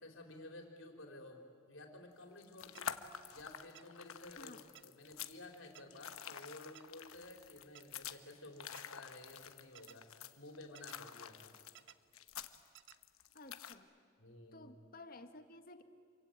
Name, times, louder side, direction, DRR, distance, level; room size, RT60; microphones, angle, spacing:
voice 1, 0.0-3.0 3.3-11.6 14.2-14.7, left 2 dB, 65° left, 3 dB, 4.0 m, -54 dB
sound 1, 2.2-13.8, left 8 dB, 85° left, 1.2 m, -48 dB
sound 2, 2.8-2.9 3.8-3.9 4.8-4.9 5.8-5.9 6.8-6.9 7.8-7.9 8.8-8.9 9.8-10.0 10.8-11.0 11.8-12.0 12.8-13.0, right 11 dB, 55° right, 0.7 m, -56 dB
voice 2, 13.3-13.9 14.5-15.8, left 2 dB, 45° left, 7 dB, 1.6 m, -54 dB
28.0 x 24.0 x 9.0 m, 2.2 s
head